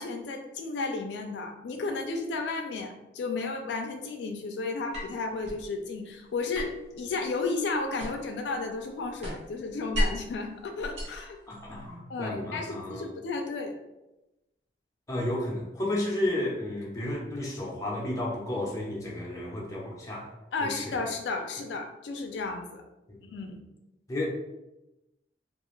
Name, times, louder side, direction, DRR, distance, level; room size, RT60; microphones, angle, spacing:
voice 1, 0.0-11.4 12.1-13.7 20.5-22.8 23.3-23.6, left 3 dB, 70° left, 4 dB, 0.3 m, -33 dB
sound 1, 4.9-5.7 6.5-8.4 8.7-10.3 10.8-11.9, equal, 40° right, 0.9 m, -34 dB
voice 2, 11.5-13.1 15.1-20.3 20.6-21.0 23.1-23.2 24.1-24.3, left 1 dB, 20° left, -4 dB, 0.5 m, -32 dB
2.4 x 2.3 x 3.0 m, 0.96 s
head